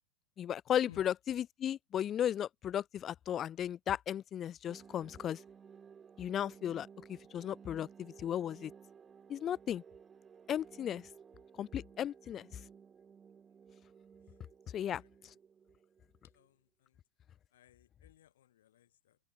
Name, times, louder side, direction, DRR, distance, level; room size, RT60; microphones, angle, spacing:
voice 1, 0.4-5.4 6.2-8.7 9.3-9.8 10.5-11.1 11.6-12.5 14.7-15.0, left 10 dB, 25° left, 0.3 m, -35 dB
sound 1, 4.7-16.5, right 7 dB, 20° right, 4.5 m, -57 dB
voice 2, 14.7-15.4 16.3-17.0 17.5-19.2, left 12 dB, 60° left, 3.6 m, -61 dB
figure-of-eight pair, 90°, 0 cm